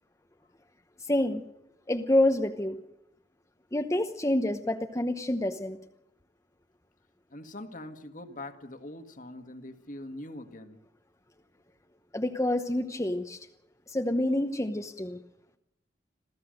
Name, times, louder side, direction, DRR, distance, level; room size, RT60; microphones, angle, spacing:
voice 1, 1.0-1.4 1.9-2.8 3.7-5.8 12.1-13.5 13.9-15.2, left 1 dB, 15° left, 5 dB, 0.9 m, -27 dB
voice 2, 7.3-10.8, left 1 dB, 50° left, 7 dB, 1.8 m, -43 dB
27.0 x 15.5 x 6.5 m, 0.83 s
head